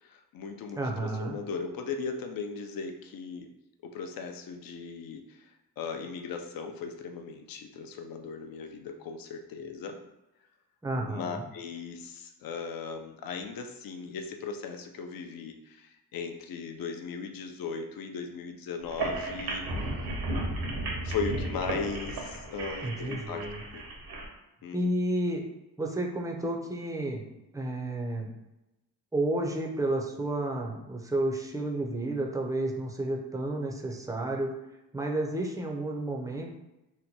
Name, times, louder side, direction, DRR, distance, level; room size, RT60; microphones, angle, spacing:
voice 1, 0.0-3.5 3.8-10.0 11.0-20.2 21.0-23.5 23.7-23.9 24.6-24.8, left 5 dB, 65° left, 4 dB, 0.5 m, -38 dB
voice 2, 0.8-1.4 10.8-11.4 22.8-23.6 24.7-25.4 25.8-27.2 27.5-28.3 29.1-34.5 34.9-36.5, right 1 dB, 10° right, 1 dB, 0.4 m, -31 dB
sound 1, 18.8-24.2, right 2 dB, 85° right, 1.0 m, -34 dB
2.8 x 2.2 x 4.1 m, 0.96 s
cardioid pair, 120°, 38 cm